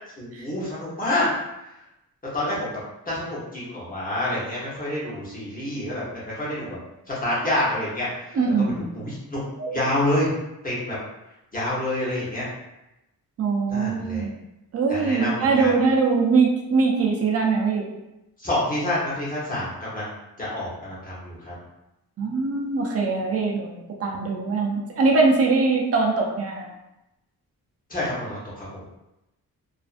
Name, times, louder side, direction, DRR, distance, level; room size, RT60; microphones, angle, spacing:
voice 1, 0.2-1.2 2.3-2.8 3.1-6.8 7.1-8.4 8.8-9.4 9.7-10.3 10.6-11.0 11.5-12.5 13.7-14.2 14.9-15.7 18.4-21.5 27.9-28.8, left 1 dB, 20° left, -8 dB, 0.9 m, -28 dB
voice 2, 8.3-8.9 9.6-9.7 13.4-14.3 14.7-17.9 22.2-26.7, right 4 dB, 40° right, -1 dB, 0.5 m, -22 dB
2.5 x 2.4 x 2.4 m, 0.93 s
wide cardioid pair, 170°, 38 cm